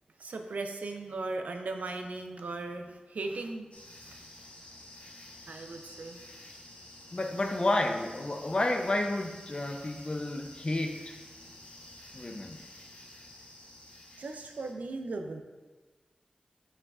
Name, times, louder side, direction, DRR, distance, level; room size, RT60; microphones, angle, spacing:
voice 1, 0.2-3.7 4.0-4.1 5.5-6.2 14.2-15.4, right 3 dB, 85° right, 5 dB, 0.5 m, -37 dB
sound 1, 3.7-14.7, left 1 dB, 60° left, 1.0 m, -51 dB
voice 2, 7.1-11.1 12.1-12.6, left 2 dB, 40° left, 5 dB, 0.6 m, -31 dB
7.0 x 5.5 x 2.4 m, 1.3 s
cardioid pair, 50°, 3 cm